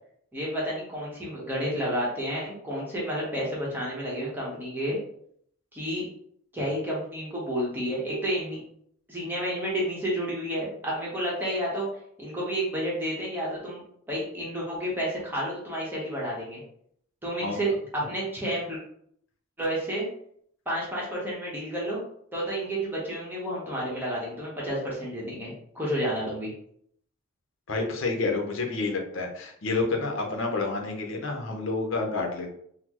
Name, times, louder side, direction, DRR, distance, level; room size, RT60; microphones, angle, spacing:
voice 1, 0.3-5.0 5.7-6.0 6.5-8.6 9.1-11.9 12.2-13.8 14.1-16.6 17.2-18.8 19.6-20.1 20.7-22.0 22.3-26.5, equal, 10° right, -6 dB, 0.8 m, -30 dB
voice 2, 27.7-32.5, left 3 dB, 65° left, 2 dB, 0.7 m, -29 dB
4.1 x 2.0 x 2.9 m, 0.68 s
head